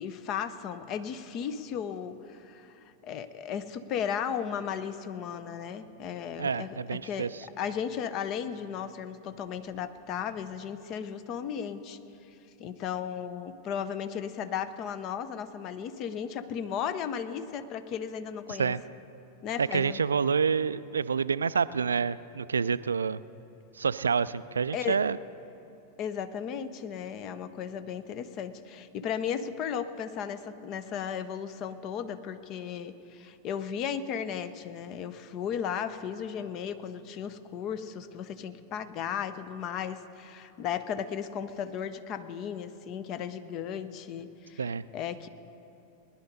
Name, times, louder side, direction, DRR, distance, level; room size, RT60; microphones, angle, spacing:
voice 1, 0.0-12.0 12.6-18.7 19.4-20.0 24.7-25.0 26.0-44.6 44.9-45.3, left 8 dB, 35° left, 12 dB, 0.7 m, -35 dB
voice 2, 6.4-7.3 18.6-18.8 19.6-23.2 23.8-25.2 44.6-44.8, right 6 dB, 70° right, 16 dB, 0.3 m, -28 dB
19.5 x 11.0 x 5.3 m, 2.8 s
figure-of-eight pair, 90°, 0 cm